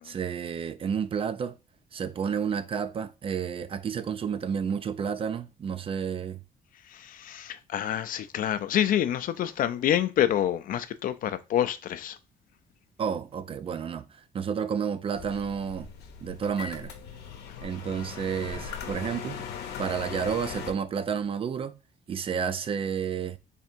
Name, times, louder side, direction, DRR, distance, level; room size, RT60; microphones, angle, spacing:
voice 1, 0.0-1.6 1.9-6.4 13.0-15.9 16.2-16.9 17.6-19.4 19.8-21.8 22.1-23.4, right 7 dB, 35° right, 0.4 m, -31 dB
voice 2, 6.9-12.2, left 11 dB, 55° left, 0.4 m, -27 dB
sound 1, 15.1-20.7, left 7 dB, 80° left, 0.8 m, -39 dB
3.4 x 2.5 x 4.3 m
cardioid pair, 110°, 17 cm